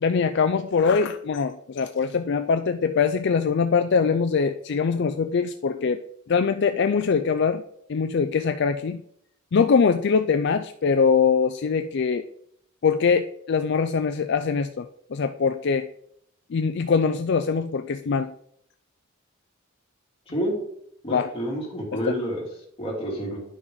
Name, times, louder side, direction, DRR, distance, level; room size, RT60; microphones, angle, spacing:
voice 1, 0.0-6.0 6.3-7.6 7.9-9.0 9.5-12.2 12.8-15.9 16.5-18.3 21.1-21.3 21.9-22.1, left 5 dB, 55° left, 9 dB, 0.4 m, -23 dB
voice 2, 21.0-22.4 22.8-23.4, equal, 30° left, -3 dB, 3.1 m, -29 dB
11.0 x 6.1 x 3.9 m, 0.72 s
head